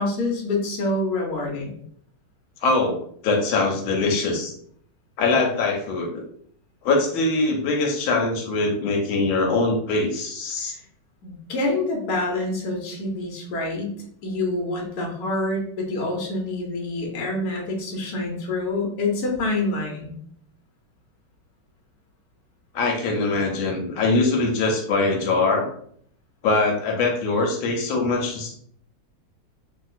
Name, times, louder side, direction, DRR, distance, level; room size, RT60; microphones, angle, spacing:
voice 1, 0.0-1.8 11.2-14.0 14.2-20.2, left 2 dB, 60° left, -1 dB, 1.1 m, -26 dB
voice 2, 2.6-4.5 5.2-6.2 6.8-10.7 22.7-25.7 26.4-28.6, left 3 dB, 85° left, 1 dB, 1.4 m, -22 dB
3.0 x 2.8 x 2.4 m, 0.62 s
omnidirectional pair, 2.2 m